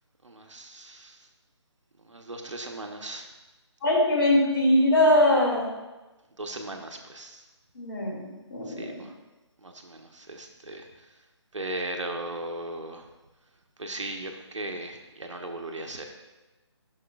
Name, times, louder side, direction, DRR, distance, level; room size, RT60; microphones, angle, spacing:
voice 1, 0.2-1.2 2.0-3.3 6.4-7.4 8.7-9.1 9.6-11.1 11.5-13.1 13.8-16.0, right 2 dB, 85° right, 2 dB, 1.0 m, -37 dB
voice 2, 3.8-5.7 7.7-9.0, left 1 dB, 50° left, -2 dB, 2.4 m, -22 dB
11.5 x 6.0 x 2.3 m, 1.1 s
figure-of-eight pair, 155°, 15 cm